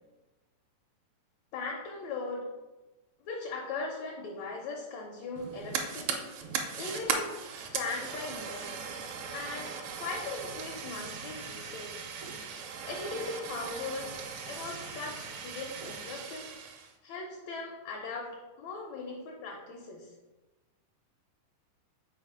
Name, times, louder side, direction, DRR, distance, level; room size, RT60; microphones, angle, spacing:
voice 1, 1.5-2.5 3.2-8.7 9.3-12.0 12.9-16.5 17.0-20.1, left 3 dB, 75° left, 0 dB, 1.7 m, -39 dB
Fire, 5.4-16.9, right 6 dB, 80° right, 1.6 m, -38 dB
4.9 x 4.0 x 4.8 m, 1.1 s
omnidirectional pair, 3.9 m